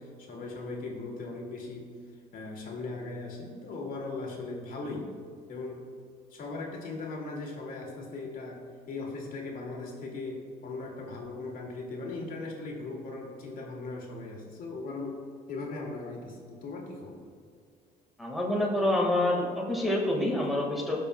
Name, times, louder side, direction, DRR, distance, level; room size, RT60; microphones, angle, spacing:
voice 1, 0.0-1.9 2.3-5.1 5.5-5.9 6.3-15.2 15.5-17.2, left 3 dB, 55° left, 0 dB, 2.1 m, -38 dB
voice 2, 18.2-21.0, left 1 dB, ahead, -3 dB, 1.6 m, -27 dB
18.5 x 6.3 x 2.2 m, 2.2 s
cardioid pair, 110°, 17 cm